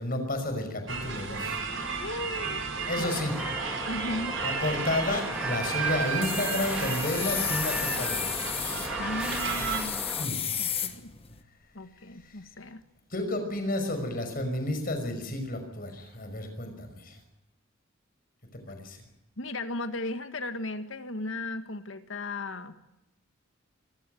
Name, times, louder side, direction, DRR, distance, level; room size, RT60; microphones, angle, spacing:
voice 1, 0.0-1.6 2.9-3.4 4.4-8.4 10.2-10.4 12.2-12.3 13.1-17.2 18.5-19.0, left 1 dB, 45° left, 7 dB, 5.7 m, -31 dB
sound 1, 0.9-9.8, right 5 dB, 65° right, 5.2 m, -33 dB
voice 2, 2.0-3.2 3.9-4.4 9.0-11.1 11.7-12.8 19.4-22.7, left 2 dB, 70° left, 9 dB, 1.9 m, -36 dB
sound 2, 3.0-10.3, right 1 dB, 5° right, 2.2 m, -38 dB
sound 3, 5.7-11.4, left 8 dB, 30° left, 1.5 m, -33 dB
25.5 x 16.5 x 9.2 m, 0.91 s
head